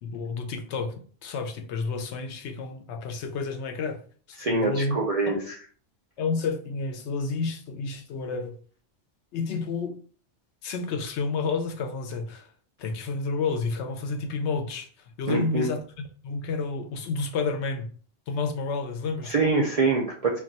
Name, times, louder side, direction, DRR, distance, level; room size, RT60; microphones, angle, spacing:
voice 1, 0.0-4.0 4.3-5.0 5.3-5.5 6.2-8.6 9.3-10.0 10.6-12.5 12.8-14.9 15.2-15.8 16.2-17.9 18.3-19.3, left 4 dB, 75° left, 0.9 m, -30 dB
voice 2, 4.4-5.5 15.3-15.7 19.3-20.4, right 3 dB, 50° right, 0.4 m, -25 dB
2.3 x 2.3 x 3.9 m
omnidirectional pair, 1.2 m